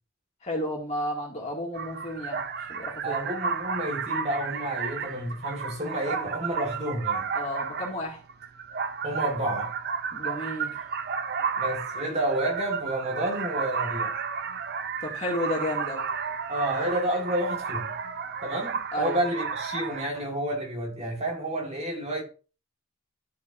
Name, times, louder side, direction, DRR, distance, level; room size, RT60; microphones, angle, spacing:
voice 1, 0.4-3.2 7.3-8.2 10.1-10.8 15.0-16.0 18.9-19.2, left 1 dB, 30° left, 2.3 m, -32 dB
sound 1, 1.7-20.1, right 6 dB, 45° right, 0.6 m, -33 dB
voice 2, 3.0-7.3 9.0-9.7 11.6-14.2 16.5-17.9 18.4-22.2, right 1 dB, 30° right, 1.8 m, -30 dB
13.0 x 5.1 x 2.7 m
head